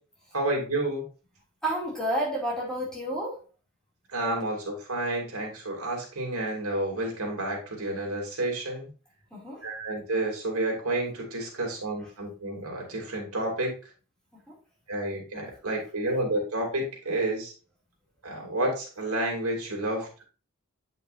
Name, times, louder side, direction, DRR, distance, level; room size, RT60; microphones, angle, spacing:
voice 1, 0.3-1.0 4.1-8.9 9.6-13.7 14.9-17.5 18.2-20.2, right 1 dB, 80° right, 0 dB, 2.6 m, -30 dB
voice 2, 1.6-3.4 9.3-9.6, right 1 dB, 5° left, -4 dB, 2.4 m, -30 dB
8.5 x 5.6 x 2.5 m, 0.36 s
head